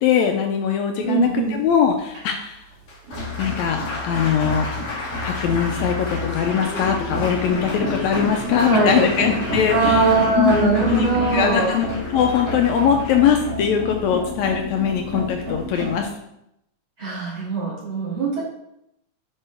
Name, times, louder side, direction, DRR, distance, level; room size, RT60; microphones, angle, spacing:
voice 1, 0.0-2.6 3.4-3.8 4.0-4.7 5.2-10.1 10.4-16.1, left 8 dB, 80° left, 3 dB, 1.7 m, -21 dB
voice 2, 1.0-1.5 8.6-9.1 9.7-11.8 17.0-18.4, right 4 dB, 40° right, -7 dB, 3.2 m, -21 dB
sound 1, 1.3-16.0, left 1 dB, 80° right, 3.4 m, -30 dB
Applause, 2.7-15.0, left 2 dB, 50° left, 2.5 m, -33 dB
8.8 x 5.3 x 3.5 m, 0.81 s
omnidirectional pair, 3.6 m